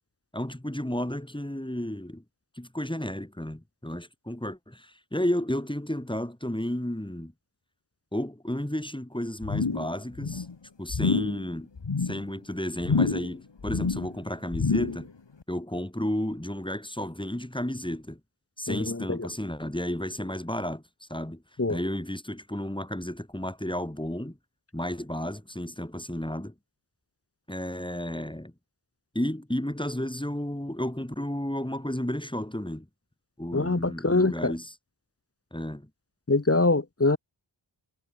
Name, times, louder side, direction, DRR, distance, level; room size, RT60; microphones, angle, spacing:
voice 1, 0.3-2.2 2.6-7.3 8.1-10.5 10.8-11.7 12.0-15.1 15.5-18.2 18.6-21.4 21.7-24.4 24.7-26.5 27.5-28.5 29.1-32.9 33.4-34.7 35.5-35.9, left 1 dB, 10° left, 2.3 m, -32 dB
sound 1, 9.4-9.9 10.2-10.5 10.9-11.4 11.8-12.2 12.8-13.4 13.6-14.1 14.5-15.1 15.4-15.5, left 4 dB, 65° left, 1.6 m, -27 dB
voice 2, 18.7-19.3 21.6-21.8 33.5-34.5 36.3-37.2, left 3 dB, 30° left, 1.0 m, -24 dB
wide cardioid pair, 45°, 46 cm